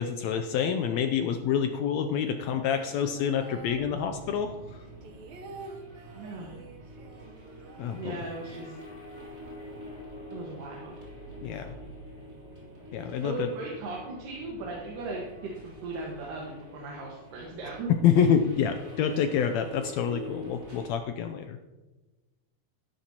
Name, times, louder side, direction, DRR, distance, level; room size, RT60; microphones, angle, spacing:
voice 1, 0.0-4.8 7.8-8.2 11.4-11.8 12.9-13.5 18.0-21.6, left 8 dB, 85° left, 7 dB, 1.6 m, -27 dB
sound 1, 2.3-4.4 4.7-8.7 9.0-9.1 9.3-9.8, right 3 dB, 65° right, 2.0 m, -48 dB
sound 2, 3.6-20.9, equal, 25° right, 3.5 m, -46 dB
voice 2, 6.1-6.5 8.0-8.7 10.3-10.9 13.2-17.9, right 3 dB, 85° right, -3 dB, 3.1 m, -37 dB
12.5 x 11.0 x 2.9 m, 1.1 s
omnidirectional pair, 3.7 m